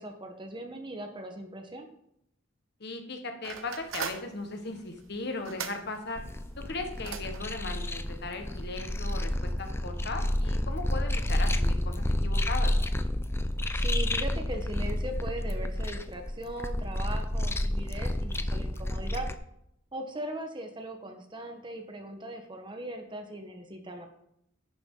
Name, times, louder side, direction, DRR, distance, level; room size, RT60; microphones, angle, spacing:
voice 1, 0.0-1.9 13.7-19.3 19.9-24.1, right 1 dB, 25° right, 5 dB, 1.2 m, -39 dB
voice 2, 2.8-6.2 6.6-12.7, left 3 dB, 55° left, 5 dB, 1.6 m, -37 dB
sound 1, 3.4-9.3, right 6 dB, 90° right, 1.1 m, -43 dB
sound 2, 6.2-19.3, left 1 dB, 10° left, 0.5 m, -30 dB
11.0 x 9.6 x 3.9 m, 0.75 s
head